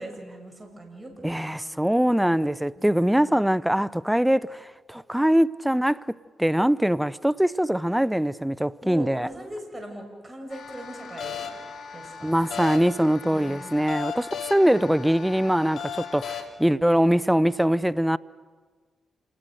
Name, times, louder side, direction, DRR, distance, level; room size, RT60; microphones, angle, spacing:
voice 1, 0.0-1.8 2.8-3.4 8.8-11.5 11.9-12.5 13.2-14.0, right 1 dB, 25° right, 6.9 m, -41 dB
voice 2, 1.2-9.3 12.2-18.2, equal, 5° right, 0.7 m, -23 dB
sound 1, 10.5-16.4, left 7 dB, 75° left, 2.4 m, -37 dB
28.5 x 19.5 x 6.6 m
supercardioid pair, 45°, 0 cm